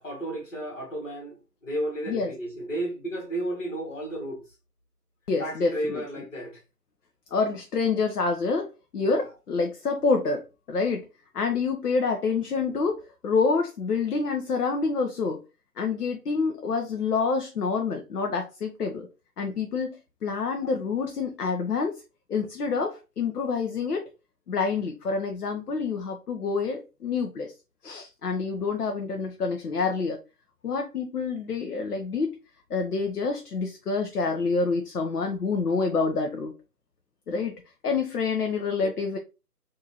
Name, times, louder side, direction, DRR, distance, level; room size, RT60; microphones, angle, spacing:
voice 1, 0.0-4.4 5.4-6.6 9.0-9.3 38.8-38.9, right 1 dB, 50° left, 1.7 m, -33 dB
voice 2, 5.3-6.0 7.3-11.1 11.3-15.4 15.8-19.1 19.4-22.0 22.3-24.1 24.5-27.5 27.8-30.2 30.6-32.3 32.7-36.5 37.3-37.5 37.8-39.2, left 4 dB, 70° left, 0.7 m, -27 dB
3.7 x 2.7 x 2.8 m
figure-of-eight pair, 160°, 48 cm